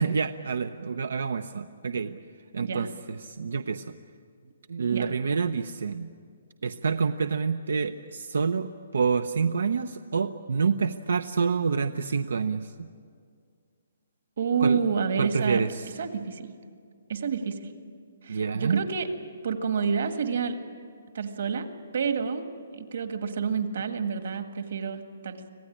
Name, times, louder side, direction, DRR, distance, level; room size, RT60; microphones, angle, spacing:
voice 1, 0.0-2.2 2.5-3.9 4.7-6.1 6.6-12.9 14.6-14.8 15.2-15.9 18.3-18.8, right 5 dB, 80° right, 10 dB, 0.7 m, -27 dB
voice 2, 14.4-15.6 16.0-16.5 17.1-17.7 18.2-19.1 19.4-20.6 21.1-21.7 21.9-22.5 22.7-25.4, right 6 dB, 50° right, 7 dB, 1.8 m, -28 dB
26.0 x 17.0 x 10.0 m, 2.1 s
hypercardioid pair, 180°, 0 cm